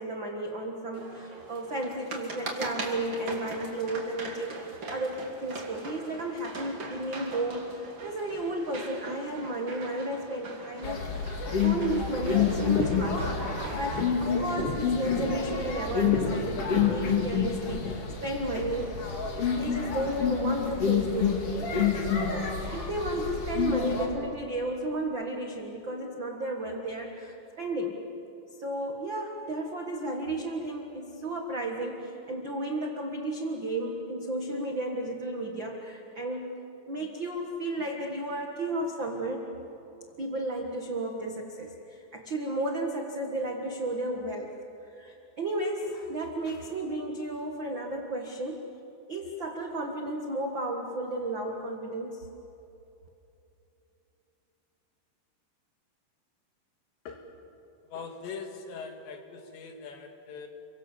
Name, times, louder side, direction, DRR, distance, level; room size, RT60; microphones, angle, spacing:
voice 1, 0.0-18.0 18.2-19.0 19.4-21.7 22.0-28.0 28.6-36.6 36.9-39.4 40.2-44.5 44.8-48.7 49.1-52.3, right 1 dB, 70° right, 2 dB, 1.1 m, -33 dB
sound 1, 0.9-14.0, right 3 dB, 35° right, 2.6 m, -41 dB
sound 2, 10.8-24.1, left 6 dB, 40° left, 2.7 m, -28 dB
voice 2, 57.1-57.4 57.9-60.5, left 5 dB, 85° left, 4 dB, 4.3 m, -41 dB
29.5 x 24.0 x 7.3 m, 2.9 s
omnidirectional pair, 4.9 m